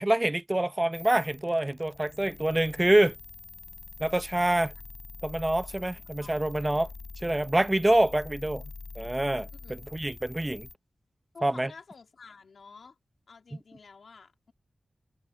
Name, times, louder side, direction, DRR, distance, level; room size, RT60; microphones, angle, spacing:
voice 1, 0.0-3.1 4.0-4.7 5.2-6.9 7.2-8.6 9.0-10.7 11.4-11.7, right 1 dB, 15° right, 0.6 m, -26 dB
sound 1, 0.9-10.8, left 4 dB, 55° left, 5.5 m, -45 dB
voice 2, 5.9-6.8 7.6-7.7 9.5-9.8 11.3-13.0 13.3-14.5, left 5 dB, 75° left, 2.7 m, -51 dB
wide cardioid pair, 110°, 0 cm